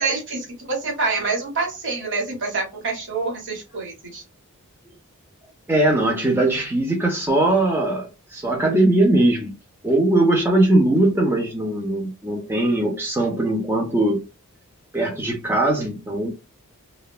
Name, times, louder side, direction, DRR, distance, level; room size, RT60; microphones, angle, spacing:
voice 1, 0.0-4.2, right 4 dB, 55° right, 1.2 m, -26 dB
voice 2, 5.7-9.5 9.8-14.2 14.9-16.3, right 1 dB, 10° right, 0.4 m, -20 dB
2.8 x 2.2 x 2.2 m
head